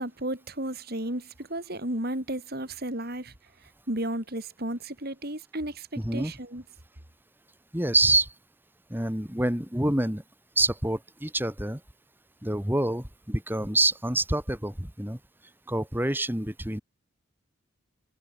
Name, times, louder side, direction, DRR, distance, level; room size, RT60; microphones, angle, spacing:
voice 1, 0.0-3.3 3.9-5.9 6.1-6.6, right 1 dB, 50° right, 4.1 m, -33 dB
voice 2, 7.7-8.3 8.9-10.2 10.6-11.8 12.4-15.2 15.7-16.8, right 2 dB, 10° right, 2.0 m, -26 dB
head